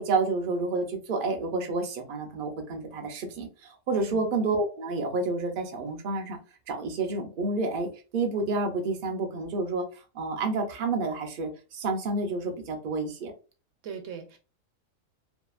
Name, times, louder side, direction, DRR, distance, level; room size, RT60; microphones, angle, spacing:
voice 1, 0.0-6.4 6.7-9.8 10.1-13.3, right 3 dB, 55° right, 4 dB, 0.6 m, -29 dB
voice 2, 13.8-14.4, right 6 dB, 70° right, 6 dB, 0.9 m, -40 dB
2.7 x 2.4 x 2.3 m, 0.34 s
omnidirectional pair, 1.4 m